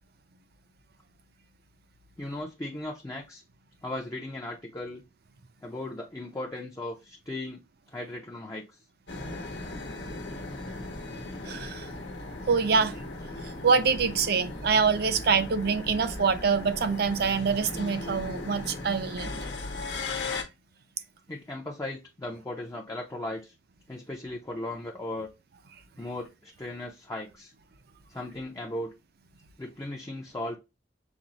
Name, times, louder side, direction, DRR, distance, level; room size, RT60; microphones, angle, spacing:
voice 1, 2.2-3.4 3.8-5.0 5.6-7.6 7.9-8.7 21.3-23.5 23.9-25.3 26.0-27.5 28.1-28.9 29.6-30.6, left 1 dB, 15° left, 0.5 m, -37 dB
sound 1, 9.1-20.4, left 2 dB, 85° left, 1.0 m, -37 dB
voice 2, 11.4-11.9 12.5-12.9 13.6-19.4, right 5 dB, 60° right, 0.5 m, -25 dB
6.0 x 2.0 x 3.9 m
head